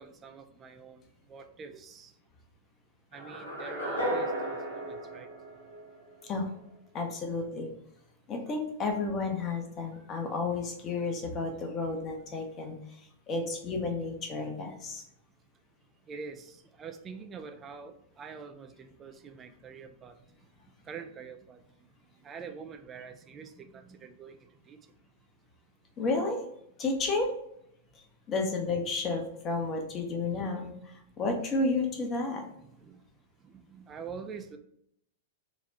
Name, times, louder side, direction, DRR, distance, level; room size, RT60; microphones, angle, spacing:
voice 1, 0.0-2.2 3.1-5.3 16.0-20.5 20.8-21.6 22.0-24.9 32.6-33.1 33.4-34.6, right 5 dB, 25° right, 0.4 m, -46 dB
sound 1, 3.1-6.2, right 1 dB, 85° left, 1.1 m, -34 dB
voice 2, 6.9-7.7 8.3-15.0 26.0-26.4 26.8-27.3 27.9-32.5, left 3 dB, 30° left, 0.9 m, -32 dB
4.1 x 2.3 x 4.0 m
figure-of-eight pair, 105°, 0 cm